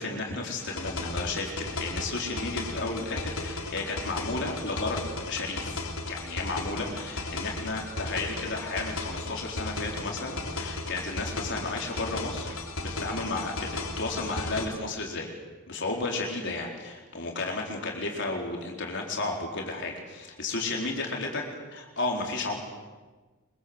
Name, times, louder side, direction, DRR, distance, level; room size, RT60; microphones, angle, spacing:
voice 1, 0.0-5.0 5.3-15.3 15.7-21.4 21.7-22.6, left 3 dB, 60° left, 0 dB, 4.4 m, -33 dB
sound 1, 0.6-14.6, left 2 dB, 85° left, 4.0 m, -35 dB
25.5 x 23.5 x 8.1 m, 1.3 s
head